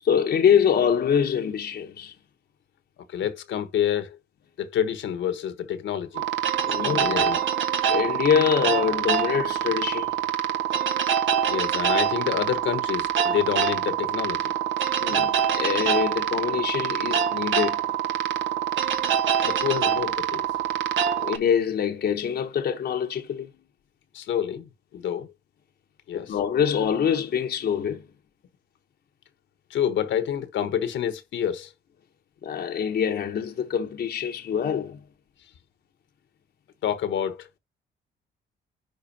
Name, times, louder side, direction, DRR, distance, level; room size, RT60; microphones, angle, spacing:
voice 1, 0.0-2.1 6.7-7.4 7.9-10.2 15.0-17.8 21.1-23.5 26.1-28.0 32.4-35.0, left 8 dB, 55° left, 1.0 m, -25 dB
voice 2, 3.1-4.2 4.6-6.3 6.8-7.4 11.5-14.5 19.4-20.4 24.1-25.3 26.1-26.3 29.7-31.7 36.8-37.5, left 9 dB, 75° left, 1.2 m, -28 dB
sound 1, 6.1-21.4, right 9 dB, 75° right, 1.3 m, -25 dB
10.5 x 4.0 x 2.8 m
cardioid pair, 90°, 20 cm